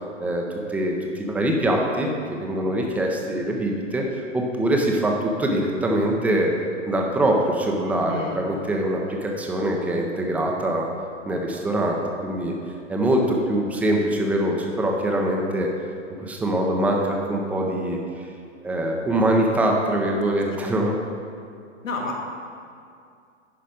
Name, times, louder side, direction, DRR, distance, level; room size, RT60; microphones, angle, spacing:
voice 1, 0.2-2.1 2.4-6.5 6.9-10.9 11.3-12.5 12.9-15.7 16.2-18.0 18.6-21.0, right 1 dB, 5° right, 0 dB, 0.4 m, -23 dB
voice 2, 8.1-8.4 21.8-22.2, left 3 dB, 85° left, -1 dB, 1.8 m, -30 dB
10.5 x 5.0 x 4.9 m, 2.4 s
figure-of-eight pair, 110°, 38 cm